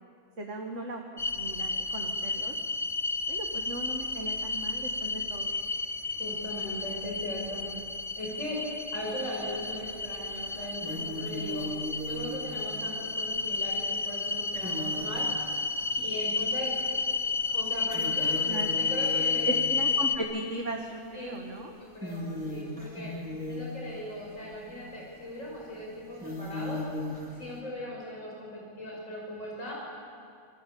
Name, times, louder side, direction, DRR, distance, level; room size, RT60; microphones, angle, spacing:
voice 1, 0.4-1.0 1.4-2.5 3.3-5.5 18.5-18.8 19.5-21.7, right 1 dB, 70° right, 2 dB, 2.2 m, -37 dB
sound 1, 1.2-20.2, left 4 dB, 25° left, 1.1 m, -31 dB
voice 2, 6.2-7.7 8.2-11.7 12.1-15.3 15.9-16.7 17.5-19.5 21.1-21.4 21.8-23.1 23.5-26.8 27.3-29.7, left 1 dB, 85° left, -3 dB, 6.2 m, -39 dB
sound 2, 9.3-9.9 10.4-16.2 16.8-16.9 17.3-20.2 21.1-21.4 21.8-27.6, left 1 dB, 5° right, 4.8 m, -38 dB
29.0 x 22.0 x 8.6 m, 2.3 s
omnidirectional pair, 1.3 m